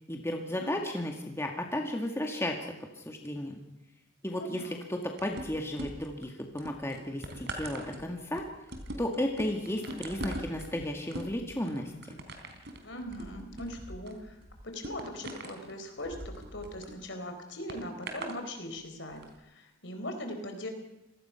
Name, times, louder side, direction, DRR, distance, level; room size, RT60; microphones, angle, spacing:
voice 1, 0.0-2.6 3.1-3.6 4.2-8.4 9.0-11.9, left 1 dB, 15° left, 2 dB, 2.0 m, -34 dB
voice 2, 4.3-4.9 9.8-10.0 12.8-14.4 14.6-20.7, left 1 dB, 60° left, 5 dB, 4.3 m, -40 dB
sound 1, 5.2-6.2 6.6-16.9 17.7-18.4 19.1-19.2, right 1 dB, 55° right, 3.7 m, -41 dB
27.5 x 19.0 x 5.9 m, 0.96 s
head